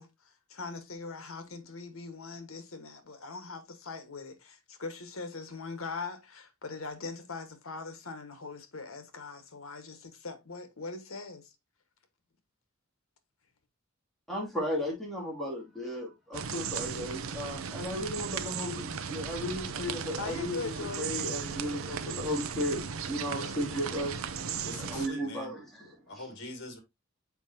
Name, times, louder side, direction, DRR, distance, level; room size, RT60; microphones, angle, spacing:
voice 1, 0.0-11.5 20.2-21.1, left 4 dB, 80° left, 1.4 m, -41 dB
voice 2, 14.3-20.7 21.0-25.9, equal, ahead, 2.4 m, -35 dB
sound 1, 16.3-25.1, right 6 dB, 80° right, 0.6 m, -36 dB
voice 3, 24.6-25.5 26.1-26.8, left 2 dB, 60° left, 2.4 m, -43 dB
7.2 x 5.0 x 2.7 m
head